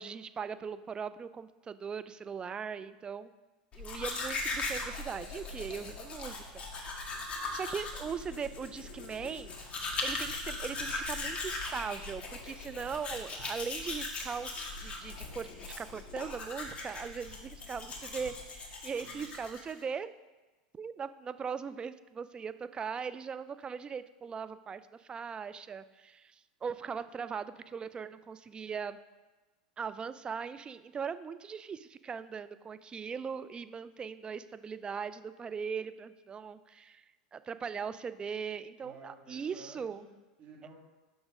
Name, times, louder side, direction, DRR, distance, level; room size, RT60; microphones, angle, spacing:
voice 1, 0.0-3.3 3.7-6.4 6.7-7.2 7.5-9.6 10.0-20.1 20.7-29.0 29.8-37.1 37.3-40.0, right 6 dB, 20° right, 13 dB, 0.4 m, -40 dB
Domestic sounds home sounds, 3.7-19.8, left 3 dB, 30° left, 1.5 m, -39 dB
voice 2, 18.8-19.3 38.8-40.7, right 3 dB, 40° right, -1 dB, 2.3 m, -54 dB
6.3 x 5.8 x 5.3 m, 1.2 s
hypercardioid pair, 100°, 4 cm